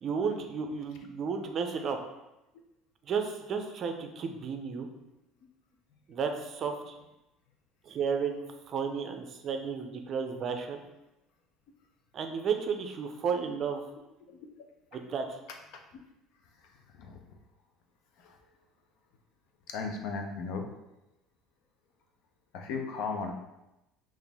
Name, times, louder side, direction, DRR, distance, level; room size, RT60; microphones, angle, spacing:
voice 1, 0.0-2.0 3.1-4.9 6.1-6.9 7.9-10.8 12.1-13.8 14.9-15.4, right 6 dB, 40° right, 5 dB, 0.5 m, -33 dB
voice 2, 16.6-17.4 18.2-18.4 19.7-20.7 22.5-23.3, left 4 dB, 70° left, 3 dB, 0.6 m, -37 dB
4.0 x 2.5 x 3.4 m, 0.95 s
cardioid pair, 125°, 0 cm